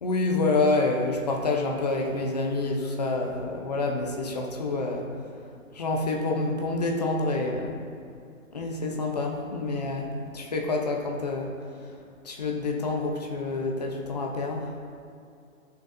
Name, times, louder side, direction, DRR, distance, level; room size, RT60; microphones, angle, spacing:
voice 1, 0.0-5.1 5.7-7.8 8.5-11.5 12.2-14.7, left 2 dB, 30° left, 0 dB, 0.8 m, -27 dB
11.0 x 6.6 x 2.7 m, 2.4 s
hypercardioid pair, 165°, 42 cm